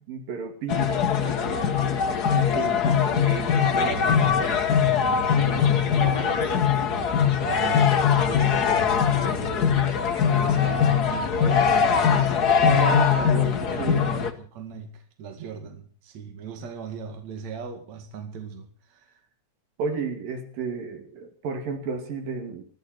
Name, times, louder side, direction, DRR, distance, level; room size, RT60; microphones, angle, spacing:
voice 1, 0.1-1.6 2.3-3.3 12.7-14.1 19.8-22.6, right 5 dB, 80° right, 5 dB, 4.4 m, -32 dB
sound 1, 0.7-14.3, left 7 dB, 50° left, 1.1 m, -21 dB
voice 2, 3.2-9.8 10.3-12.2 13.4-19.2, right 6 dB, 55° right, 6 dB, 3.3 m, -38 dB
20.5 x 14.5 x 4.4 m, 0.43 s
omnidirectional pair, 3.9 m